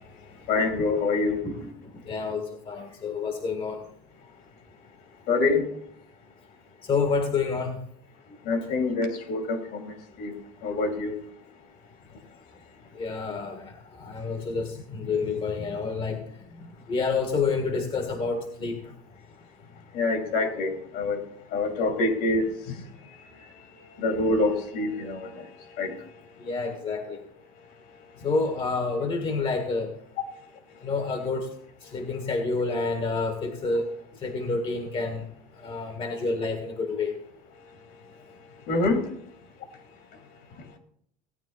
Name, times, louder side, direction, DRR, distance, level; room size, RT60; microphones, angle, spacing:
voice 1, 0.5-1.4 5.3-5.6 8.5-9.8 10.2-10.3 10.6-11.1 19.9-21.2 21.5-22.5 24.0-25.3 25.8-25.9 38.7-39.0, left 3 dB, 60° left, 4 dB, 2.9 m, -25 dB
voice 2, 2.1-3.8 6.9-7.8 12.9-16.2 16.9-18.8 26.4-27.2 28.2-29.9 30.8-31.5 31.8-33.9 34.2-35.2 35.6-37.1, left 4 dB, 30° left, 5 dB, 1.7 m, -28 dB
17.0 x 9.0 x 4.1 m, 0.68 s
supercardioid pair, 115°, 18 cm